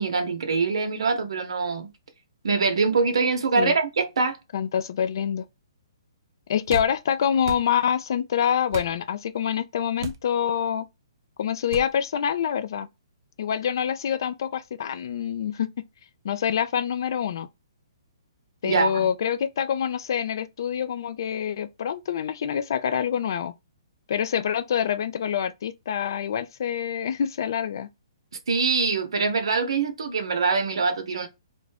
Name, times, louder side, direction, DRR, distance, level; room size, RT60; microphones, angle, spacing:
voice 1, 0.0-1.9 2.4-4.4 18.6-19.1 28.5-31.3, right 4 dB, 75° right, 0.8 m, -24 dB
voice 2, 4.5-5.4 6.5-10.9 11.4-12.9 13.4-15.7 16.2-17.5 18.6-23.5 24.1-27.9, left 8 dB, 50° left, 0.4 m, -26 dB
sound 1, 6.7-6.9 7.4-7.7 8.7-8.9 10.0-10.2 11.7-11.9, right 4 dB, 35° right, 0.4 m, -34 dB
2.5 x 2.2 x 3.2 m
hypercardioid pair, 170°, 3 cm